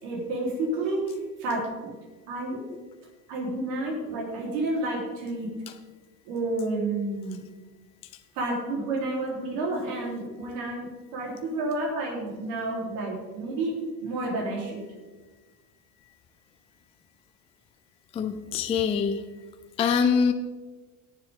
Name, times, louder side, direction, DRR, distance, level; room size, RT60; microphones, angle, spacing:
voice 1, 0.0-1.9 2.3-2.6 3.3-5.5 6.3-7.4 8.4-14.8 18.4-18.6, right 2 dB, 70° right, -3 dB, 4.0 m, -30 dB
voice 2, 18.1-19.2 19.8-20.3, left 6 dB, 15° left, 8 dB, 0.3 m, -24 dB
17.5 x 7.3 x 3.7 m, 1.3 s
supercardioid pair, 125°, 44 cm